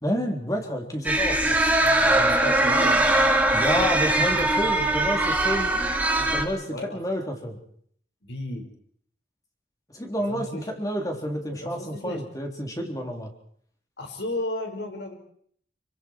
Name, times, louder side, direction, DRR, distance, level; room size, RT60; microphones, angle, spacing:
voice 1, 0.0-1.4 3.5-5.8 6.3-7.6 9.9-13.3, equal, 20° left, 2 dB, 3.8 m, -29 dB
sound 1, 1.0-6.4, right 2 dB, 10° right, 2.6 m, -21 dB
voice 2, 1.5-3.0 6.7-7.1 8.2-8.7 10.3-10.7 11.1-12.2 14.0-15.1, left 1 dB, 70° left, 4 dB, 5.7 m, -34 dB
27.5 x 24.5 x 4.8 m, 0.62 s
head